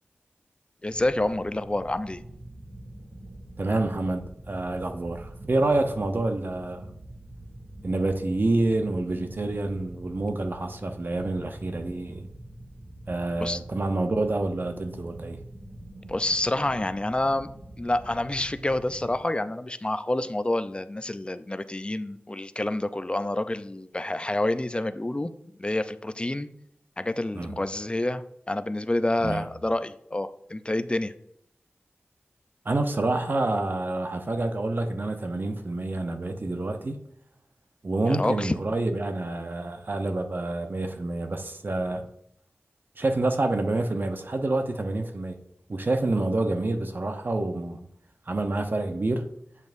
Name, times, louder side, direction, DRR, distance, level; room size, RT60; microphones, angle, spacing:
voice 1, 0.8-2.2 13.4-13.6 16.1-17.5 17.8-25.3 25.6-26.5 27.0-31.1 38.1-38.5, left 1 dB, 25° left, 0.5 m, -28 dB
sound 1, 0.9-19.2, right 1 dB, 20° right, 2.5 m, -45 dB
voice 2, 3.6-6.9 7.8-12.3 13.1-15.4 27.3-27.6 29.2-29.5 32.6-37.0 37.8-42.1 43.0-45.4 45.7-47.9 48.3-49.3, right 2 dB, 50° right, 0.8 m, -28 dB
8.2 x 7.0 x 2.6 m
wide cardioid pair, 50°, 4 cm